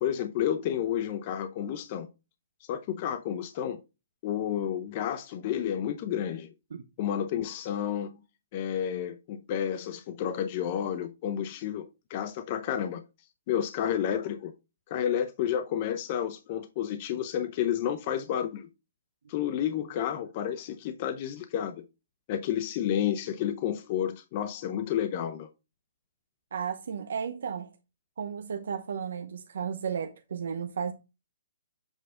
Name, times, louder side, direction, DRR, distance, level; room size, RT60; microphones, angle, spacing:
voice 1, 0.0-2.1 2.7-3.8 4.2-6.5 7.0-8.1 8.5-13.0 13.5-14.5 14.9-18.7 19.3-21.8 22.3-25.5, left 10 dB, 30° left, 0.7 m, -30 dB
voice 2, 26.5-27.7 28.2-30.9, right 7 dB, 75° right, 0.8 m, -34 dB
8.1 x 4.0 x 3.7 m
hypercardioid pair, 165°, 0 cm